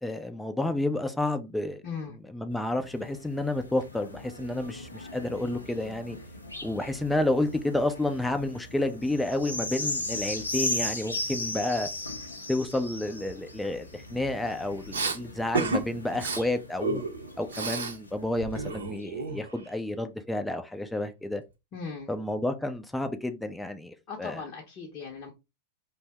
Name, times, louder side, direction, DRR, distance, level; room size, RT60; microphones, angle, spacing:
voice 1, 0.0-1.8 2.3-6.2 6.6-11.9 12.5-17.0 17.4-21.4 22.1-24.4, left 1 dB, 5° left, 0.4 m, -30 dB
voice 2, 1.8-2.2 21.7-22.1 24.1-25.3, left 5 dB, 35° left, 0.7 m, -38 dB
sound 1, 2.6-18.4 19.0-19.1, left 1 dB, 80° left, 0.5 m, -38 dB
Respiratory sounds, 14.9-15.2 15.5-15.8 16.1-16.4 16.8-18.0 18.2-19.7, right 3 dB, 70° right, 0.6 m, -31 dB
2.6 x 2.1 x 3.3 m
figure-of-eight pair, 90°, 0 cm